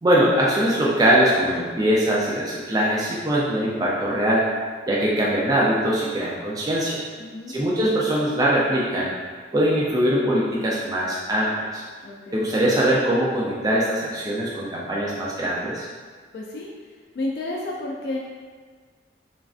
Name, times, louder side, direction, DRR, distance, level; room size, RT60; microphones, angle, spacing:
voice 1, 0.0-4.5 4.9-7.0 7.5-9.1 9.5-11.8 12.3-15.9, right 1 dB, 20° right, -5 dB, 0.3 m, -22 dB
voice 2, 7.2-7.6 12.0-12.4 16.3-16.7 17.1-18.2, left 2 dB, 60° left, -2 dB, 0.3 m, -31 dB
3.1 x 2.4 x 2.4 m, 1.5 s
head